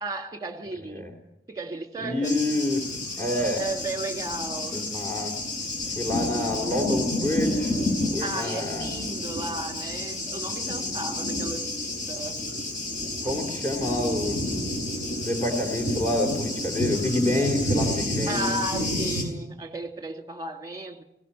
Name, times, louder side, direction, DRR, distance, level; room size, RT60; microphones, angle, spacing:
voice 1, 0.0-1.1 1.5-2.4 3.6-4.8 8.2-12.4 18.3-21.0, right 2 dB, 20° right, 1.9 m, -34 dB
voice 2, 2.0-3.6 4.7-5.3 5.9-7.7 8.1-8.9 13.2-14.4 15.2-18.6, left 1 dB, 15° left, 3.4 m, -27 dB
Thunder, 2.2-19.2, left 1 dB, 45° left, 5.8 m, -30 dB
21.5 x 17.0 x 9.7 m
head